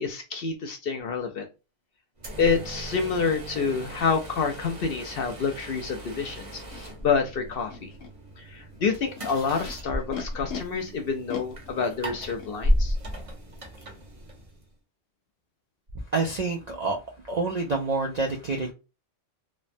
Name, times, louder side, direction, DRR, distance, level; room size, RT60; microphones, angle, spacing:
voice 1, 0.0-1.5 2.4-7.9 8.4-13.0, left 5 dB, 60° left, 0.7 m, -28 dB
sound 1, 2.2-14.7, equal, 35° right, 0.7 m, -34 dB
Animal, 6.7-6.8 7.6-8.1 8.9-10.6 11.3-12.5, left 6 dB, 85° left, 1.1 m, -39 dB
voice 2, 16.1-17.0 17.3-18.7, right 3 dB, 60° right, 0.4 m, -27 dB
3.2 x 2.1 x 2.5 m
omnidirectional pair, 1.3 m